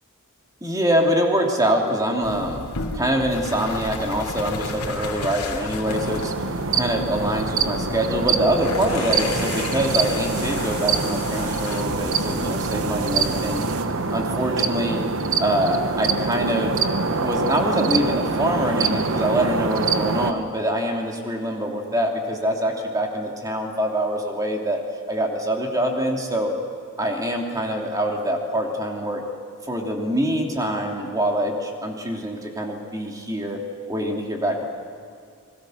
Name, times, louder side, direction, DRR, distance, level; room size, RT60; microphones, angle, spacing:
voice 1, 0.6-2.7 2.9-6.3 6.7-13.6 14.1-15.0 15.4-16.7 17.2-24.8 25.1-26.5 27.0-29.2 29.6-33.6 33.9-34.7, right 1 dB, 15° right, 1 dB, 2.8 m, -24 dB
sound 1, 2.2-13.6, left 2 dB, 90° left, 2.8 m, -33 dB
sound 2, 5.9-20.3, right 4 dB, 60° right, 1.1 m, -25 dB
sound 3, 8.5-13.9, right 5 dB, 80° right, 1.6 m, -37 dB
29.5 x 22.0 x 6.5 m, 2.2 s
head